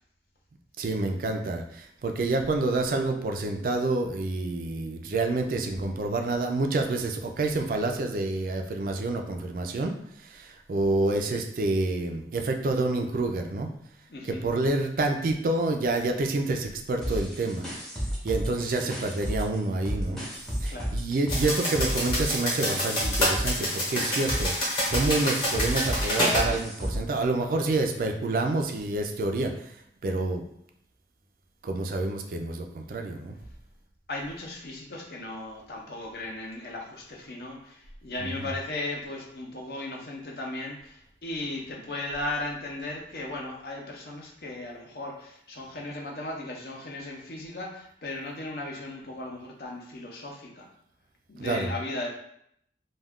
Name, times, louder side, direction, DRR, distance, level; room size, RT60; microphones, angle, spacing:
voice 1, 0.8-13.7 14.3-17.7 18.2-20.2 20.6-29.7 30.0-30.4 31.6-33.4 38.2-38.5 51.4-51.7, right 2 dB, 50° right, 4 dB, 0.3 m, -28 dB
voice 2, 14.1-14.4 18.6-18.9 20.7-21.0 34.1-50.7 51.3-52.1, left 2 dB, 60° left, 0 dB, 0.6 m, -36 dB
sound 1, 17.0-19.6 19.8-27.1, equal, 5° left, 0.6 m, -32 dB
sound 2, 21.3-26.5, equal, 25° left, 0.8 m, -27 dB
2.3 x 2.2 x 3.5 m, 0.71 s
head